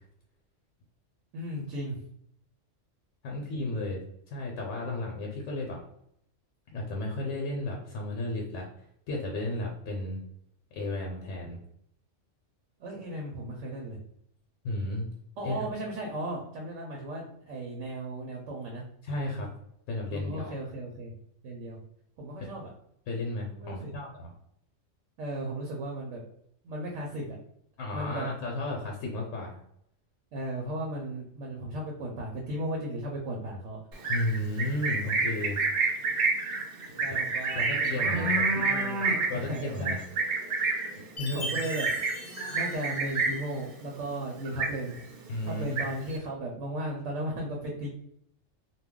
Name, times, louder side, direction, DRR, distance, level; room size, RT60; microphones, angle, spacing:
voice 1, 1.3-2.0 12.8-14.0 15.4-18.8 20.1-21.1 21.4-21.8 22.2-22.7 23.5-23.9 25.2-26.2 26.6-27.4 27.9-28.3 30.3-33.8 37.0-40.0 41.3-41.9 42.5-45.0 45.4-47.9, right 1 dB, 80° right, 0 dB, 0.9 m, -36 dB
voice 2, 3.2-4.0 4.3-5.8 6.7-8.7 9.1-10.2 10.7-11.6 14.6-15.1 15.4-15.5 19.0-19.5 19.9-20.5 22.4-22.5 23.1-24.3 27.8-29.6 34.1-35.6 37.1-37.2 37.5-38.4 39.3-40.0 40.9-41.5 45.3-45.9, left 2 dB, 80° left, -1 dB, 1.0 m, -33 dB
Livestock farm animals working animals, 33.9-43.5 43.9-44.2 44.4-45.1 45.5-46.2, right 3 dB, 60° right, 0.7 m, -29 dB
Chime, 41.2-43.7, equal, 40° left, 0.4 m, -41 dB
2.3 x 2.2 x 3.5 m, 0.72 s
omnidirectional pair, 1.3 m